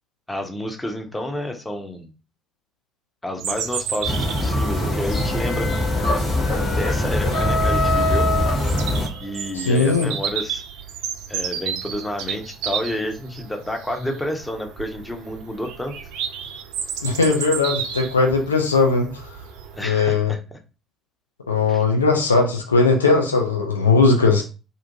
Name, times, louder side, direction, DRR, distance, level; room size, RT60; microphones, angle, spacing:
voice 1, 0.3-2.1 3.2-5.7 6.6-8.3 9.2-10.6 11.3-16.0 19.7-20.4 21.7-21.8, left 1 dB, 15° left, 4 dB, 0.6 m, -30 dB
Bird vocalization bird call bird song, 3.4-19.8, right 8 dB, 65° right, 0.3 m, -32 dB
sound 1, 4.0-9.1, left 1 dB, 45° left, 1.3 m, -23 dB
sound 2, 4.5-9.3, left 2 dB, 65° left, 1.0 m, -27 dB
voice 2, 9.5-10.1 17.0-19.1 19.8-20.3 21.5-24.4, left 4 dB, 85° left, 3 dB, 0.4 m, -18 dB
2.5 x 2.5 x 2.6 m, 0.32 s
figure-of-eight pair, 50°, 0 cm